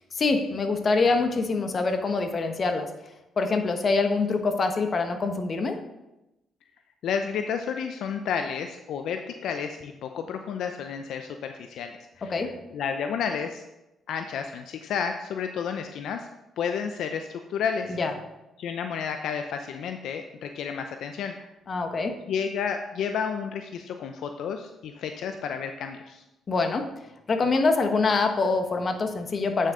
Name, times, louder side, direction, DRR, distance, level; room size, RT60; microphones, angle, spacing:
voice 1, 0.2-2.9 3.4-5.8 12.3-12.5 18.0-18.1 21.7-22.1 26.5-26.8 27.3-29.7, left 3 dB, 40° left, 5 dB, 1.1 m, -24 dB
voice 2, 7.0-13.6 14.1-16.3 16.6-18.0 18.6-21.5 22.3-26.2, left 7 dB, 75° left, 6 dB, 0.5 m, -31 dB
8.7 x 6.4 x 3.8 m, 0.94 s
cardioid pair, 90°, 0 cm